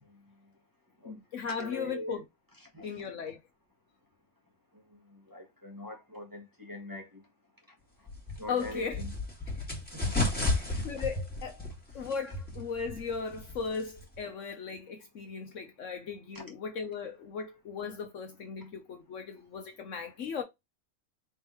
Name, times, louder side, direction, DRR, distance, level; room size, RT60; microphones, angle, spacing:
voice 1, 1.0-2.2 2.8-3.4 8.5-9.0 10.8-11.7 11.9-20.4, left 5 dB, 60° left, 1.0 m, -37 dB
voice 2, 1.6-2.2 2.7-3.1 4.9-7.2 8.4-9.1 10.0-11.0 12.0-12.1 16.3-16.4, left 1 dB, 15° right, 1.2 m, -43 dB
sound 1, 8.1-14.2, left 2 dB, 5° left, 1.5 m, -34 dB
4.4 x 3.4 x 2.9 m
omnidirectional pair, 1.6 m